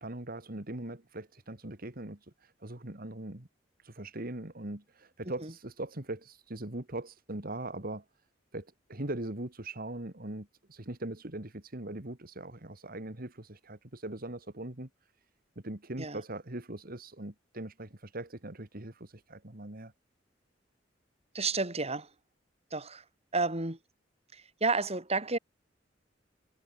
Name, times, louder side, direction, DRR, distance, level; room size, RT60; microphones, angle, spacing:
voice 1, 0.0-3.5 3.8-8.0 8.5-14.9 15.6-19.9, right 1 dB, 50° right, 2.5 m, -41 dB
voice 2, 21.3-22.1 22.7-23.0 23.3-23.8 24.3-25.4, right 3 dB, 35° right, 6.2 m, -31 dB
head